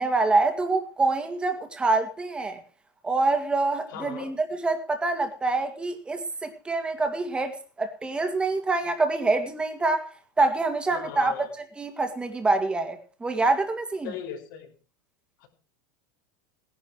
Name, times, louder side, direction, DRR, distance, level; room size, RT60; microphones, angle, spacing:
voice 1, 0.0-2.6 3.0-11.3 11.8-14.1, right 3 dB, 10° right, 2.2 m, -26 dB
voice 2, 3.9-4.3 10.9-11.5 14.0-14.7 15.4-15.5, left 9 dB, 70° left, 5.6 m, -38 dB
19.0 x 11.0 x 4.7 m
supercardioid pair, 170°, 11 cm